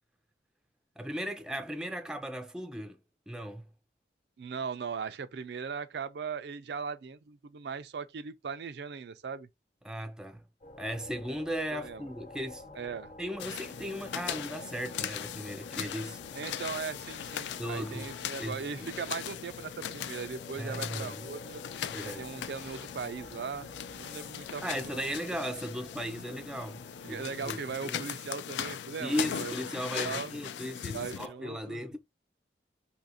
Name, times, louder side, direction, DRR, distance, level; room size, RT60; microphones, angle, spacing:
voice 1, 1.0-3.0 3.3-3.7 9.8-10.4 10.8-12.6 13.2-16.2 17.6-18.1 18.4-18.9 20.6-21.2 21.9-22.3 24.6-28.0 29.0-32.0, equal, 5° right, 0.4 m, -37 dB
voice 2, 4.4-9.5 11.7-12.1 12.8-13.1 16.3-21.6 22.0-23.7 24.0-25.1 27.0-29.5 29.9-30.4 30.9-31.8, right 5 dB, 70° right, 0.4 m, -39 dB
sound 1, 10.6-27.5, left 1 dB, 45° left, 1.0 m, -50 dB
sound 2, 13.4-31.3, left 9 dB, 80° left, 0.3 m, -39 dB
2.8 x 2.5 x 4.0 m
head